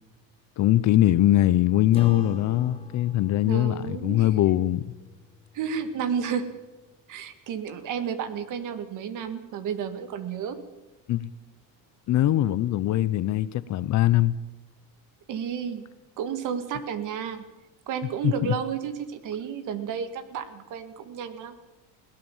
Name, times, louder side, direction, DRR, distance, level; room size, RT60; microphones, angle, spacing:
voice 1, 0.6-4.8 11.1-11.3 12.1-14.4 18.2-18.5, left 14 dB, 50° left, 0.8 m, -22 dB
Acoustic guitar / Strum, 1.9-6.7, left 4 dB, 15° left, 3.1 m, -44 dB
voice 2, 3.5-4.3 5.5-6.6 7.1-10.6 15.3-15.9 16.2-17.4 17.9-21.6, right 7 dB, 55° right, 2.1 m, -32 dB
21.5 x 17.5 x 7.3 m
cardioid pair, 145°, 38 cm